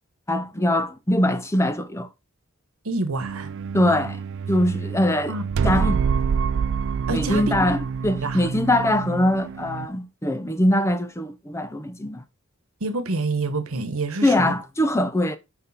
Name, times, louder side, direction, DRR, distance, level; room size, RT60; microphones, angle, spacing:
voice 1, 0.3-2.1 3.7-4.2 4.5-5.3 5.6-6.0 7.1-12.2 14.2-15.4, left 1 dB, 15° left, 0.6 m, -22 dB
voice 2, 2.8-3.5 5.3-5.4 5.7-6.0 7.1-7.5 8.2-8.4 12.8-14.5, right 3 dB, 85° right, 1.2 m, -27 dB
sound 1, 3.2-9.9, right 6 dB, 60° right, 0.3 m, -27 dB
6.0 x 5.2 x 4.2 m
head